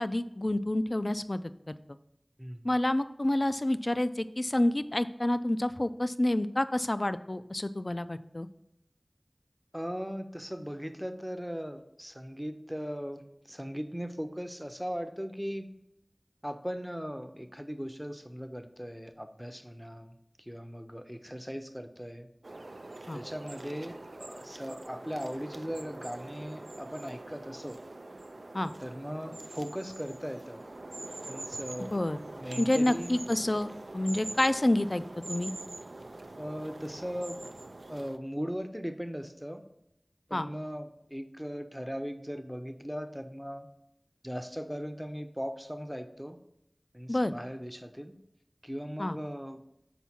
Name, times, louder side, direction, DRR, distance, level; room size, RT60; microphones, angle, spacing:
voice 1, 0.0-1.7 2.6-8.5 23.1-23.2 28.5-28.7 31.8-32.2 32.6-35.5 40.3-40.5 47.1-47.3 49.0-49.2, left 1 dB, 45° left, 12 dB, 0.3 m, -28 dB
voice 2, 9.7-15.7 16.4-20.1 20.4-22.3 23.1-27.8 28.8-30.6 31.2-32.0 32.3-33.2 36.4-37.4 37.9-39.6 40.3-43.7 44.2-46.4 46.9-48.1 48.6-49.6, equal, 5° right, 8 dB, 0.5 m, -38 dB
sound 1, 22.4-38.2, right 2 dB, 85° right, 0.3 m, -44 dB
5.8 x 4.6 x 4.2 m, 0.81 s
wide cardioid pair, 45°, 0 cm